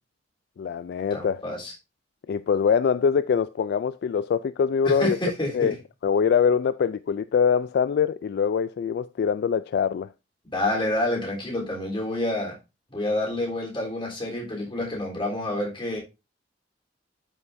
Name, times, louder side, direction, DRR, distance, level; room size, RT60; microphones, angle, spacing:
voice 1, 0.6-1.4 2.3-5.2 5.5-5.7 6.0-10.1, left 6 dB, 60° left, 0.3 m, -23 dB
voice 2, 1.1-1.7 4.8-5.7 10.4-12.6 12.9-16.0, left 1 dB, 30° left, 3.5 m, -28 dB
12.5 x 5.5 x 2.6 m
head